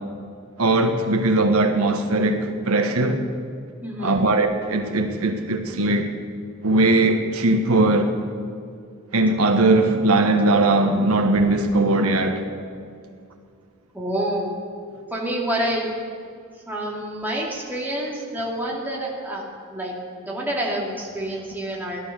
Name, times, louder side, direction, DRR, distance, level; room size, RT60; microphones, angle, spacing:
voice 1, 0.6-3.2 4.0-6.1 6.6-8.1 9.1-12.4, right 2 dB, 85° right, 5 dB, 1.3 m, -19 dB
voice 2, 3.8-4.2 13.9-14.5 15.1-15.9 16.7-19.4 19.7-19.9 20.2-22.0, right 1 dB, 10° right, -4 dB, 2.8 m, -27 dB
16.5 x 12.0 x 6.8 m, 2.2 s
head